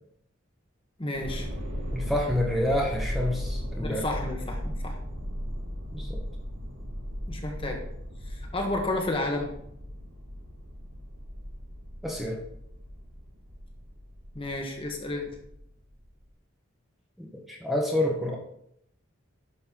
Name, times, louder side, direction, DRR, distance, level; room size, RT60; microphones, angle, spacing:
voice 1, 1.0-1.5 3.8-5.0 7.3-7.8 8.2-9.5 14.3-15.4, left 2 dB, 25° left, 1 dB, 1.4 m, -31 dB
sound 1, 1.1-16.2, equal, 80° right, 2.1 m, -36 dB
voice 2, 1.9-4.0 5.9-6.2 12.0-12.4 17.5-18.4, left 1 dB, ahead, -2 dB, 1.2 m, -28 dB
11.0 x 6.5 x 3.9 m, 0.73 s
head